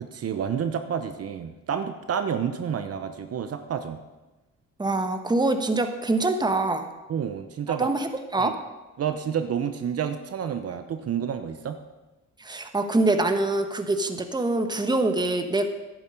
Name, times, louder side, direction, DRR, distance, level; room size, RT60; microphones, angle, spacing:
voice 1, 0.1-4.0 7.1-7.9 8.4-8.5 9.0-11.8, right 8 dB, 50° right, 8 dB, 0.9 m, -29 dB
voice 2, 4.8-6.9 7.8-8.5 12.4-15.7, right 2 dB, 15° right, 6 dB, 1.1 m, -24 dB
11.0 x 9.0 x 5.3 m, 1.1 s
cardioid pair, 90°, 30 cm